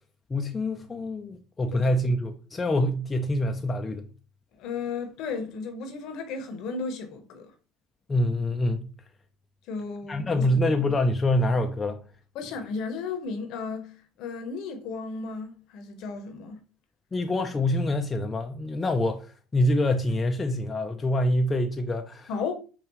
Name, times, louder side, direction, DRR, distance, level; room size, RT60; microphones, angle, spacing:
voice 1, 0.3-4.1 8.1-8.9 10.1-12.0 17.1-22.3, left 1 dB, 25° left, 0.5 m, -26 dB
voice 2, 4.6-7.5 9.7-10.5 12.3-16.6 22.3-22.5, left 4 dB, 65° left, 0.9 m, -34 dB
5.4 x 2.3 x 3.0 m
hypercardioid pair, 70°, 0 cm